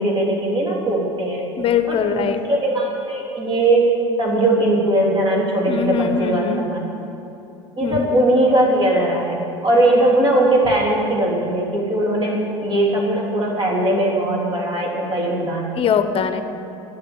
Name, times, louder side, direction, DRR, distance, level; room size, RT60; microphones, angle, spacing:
voice 1, 0.0-1.4 1.9-3.9 4.2-6.8 7.8-15.7, right 1 dB, 30° right, -2 dB, 3.3 m, -19 dB
voice 2, 1.6-2.4 5.7-6.7 7.8-8.3 15.7-16.4, left 7 dB, 35° left, 9 dB, 1.0 m, -21 dB
10.5 x 8.1 x 9.1 m, 3.0 s
hypercardioid pair, 85°, 15 cm